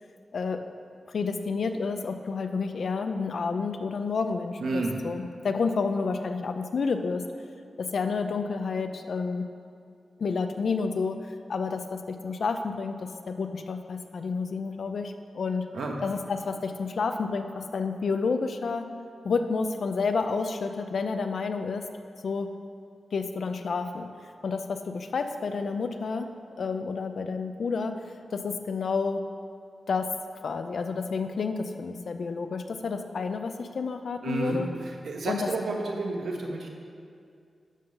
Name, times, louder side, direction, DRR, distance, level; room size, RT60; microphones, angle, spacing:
voice 1, 1.1-7.2 7.8-9.4 10.2-15.6 16.0-18.9 19.2-21.8 22.2-22.5 23.1-24.1 24.4-26.3 26.6-28.0 28.3-29.2 29.9-30.1 30.4-34.7 35.2-35.5, left 4 dB, 60° left, 7 dB, 0.5 m, -30 dB
voice 2, 4.6-5.0 15.7-16.0 34.2-34.6 35.0-36.7, right 3 dB, 75° right, 1 dB, 1.1 m, -30 dB
11.5 x 3.9 x 6.5 m, 2.3 s
wide cardioid pair, 175°, 0 cm